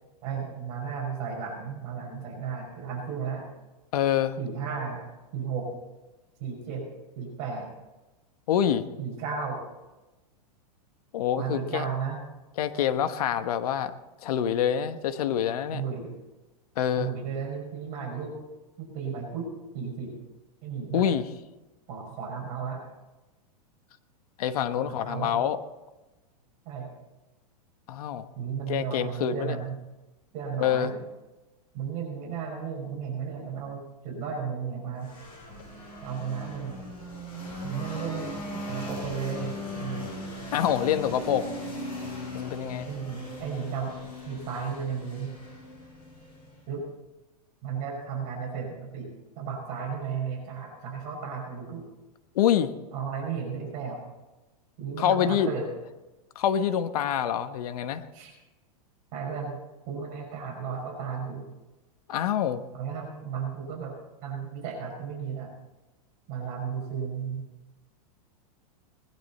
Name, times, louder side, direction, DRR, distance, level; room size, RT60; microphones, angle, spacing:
voice 1, 0.2-3.5 4.4-5.1 5.3-5.7 6.4-6.9 7.2-7.7 9.0-9.6 11.4-12.2 15.7-16.1 17.0-18.3 18.8-19.5 19.7-20.1 20.6-21.0 21.9-22.8 24.8-25.4 26.7-26.9 28.4-29.8 30.3-31.0 31.7-35.1 36.0-36.8 37.6-40.1 42.9-44.0 44.3-45.4 46.7-46.9 47.6-49.1 49.4-51.8 52.9-54.1 54.8-55.7 58.1-58.3 59.1-59.6 59.9-61.5 62.7-64.0 64.2-65.6 66.3-67.5, right 6 dB, 40° right, 0 dB, 5.5 m, -34 dB
voice 2, 3.9-4.4 8.5-8.8 11.1-11.9 12.6-13.9 14.2-15.8 16.8-17.1 20.9-21.2 24.4-25.6 27.9-28.3 28.7-29.6 30.6-30.9 40.5-41.5 42.3-42.9 52.3-52.7 55.0-55.5 56.3-58.0 62.1-62.6, left 9 dB, 70° left, 10 dB, 1.2 m, -26 dB
sound 1, 35.0-46.8, left 1 dB, 25° left, 6.0 m, -39 dB
20.0 x 11.5 x 4.3 m, 1.1 s
supercardioid pair, 145°, 20 cm